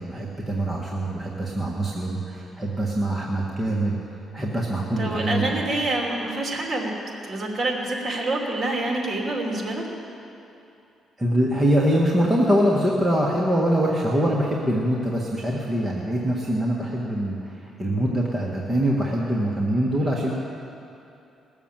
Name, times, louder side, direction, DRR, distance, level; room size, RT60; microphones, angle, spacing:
voice 1, 0.0-4.0 4.3-5.6 11.2-20.3, right 1 dB, 15° right, -3 dB, 1.6 m, -24 dB
voice 2, 5.0-6.9 7.2-9.8, right 2 dB, 40° right, -1 dB, 2.9 m, -26 dB
19.5 x 7.1 x 7.5 m, 2.7 s
cardioid pair, 90°, 0 cm